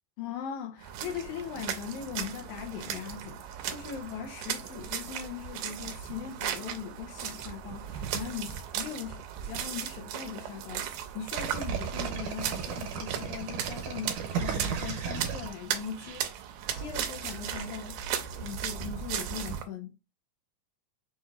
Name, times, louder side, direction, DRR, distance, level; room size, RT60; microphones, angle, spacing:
voice 1, 0.2-16.3 16.7-18.0 18.4-19.9, left 8 dB, 80° left, 1.8 m, -40 dB
sound 1, 0.8-19.6, right 9 dB, 90° right, 2.2 m, -37 dB
sound 2, 11.4-16.2, right 7 dB, 70° right, 2.3 m, -34 dB
6.3 x 2.9 x 2.4 m
omnidirectional pair, 3.8 m